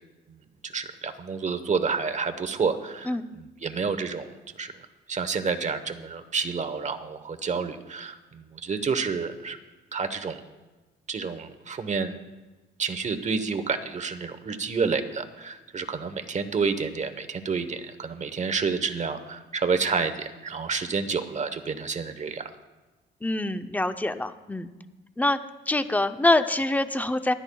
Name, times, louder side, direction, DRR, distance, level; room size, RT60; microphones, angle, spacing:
voice 1, 0.6-4.3 4.6-4.7 5.1-9.6 9.9-10.4 11.1-12.2 12.8-22.5, right 5 dB, 35° right, 9 dB, 1.1 m, -29 dB
voice 2, 23.2-24.7 25.2-25.4 25.7-27.3, left 2 dB, 10° left, 10 dB, 0.6 m, -25 dB
24.0 x 9.9 x 2.3 m, 1.2 s
cardioid pair, 90°, 20 cm